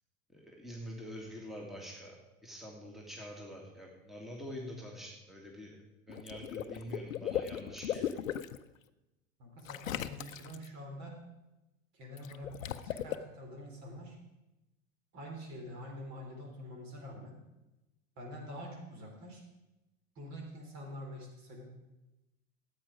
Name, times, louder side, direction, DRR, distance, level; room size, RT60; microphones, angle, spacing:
voice 1, 0.3-2.1 2.4-5.8 6.1-8.2, equal, ahead, -2 dB, 2.0 m, -46 dB
Water / Liquid, 6.1-8.6 9.6-10.7 12.2-13.1, left 10 dB, 75° left, 0.7 m, -37 dB
voice 2, 9.4-11.2 11.9-14.2 15.1-17.4 18.2-19.4 20.2-21.7, equal, 45° right, 1 dB, 3.8 m, -46 dB
13.0 x 8.6 x 5.0 m, 1.0 s
figure-of-eight pair, 80°, 40 cm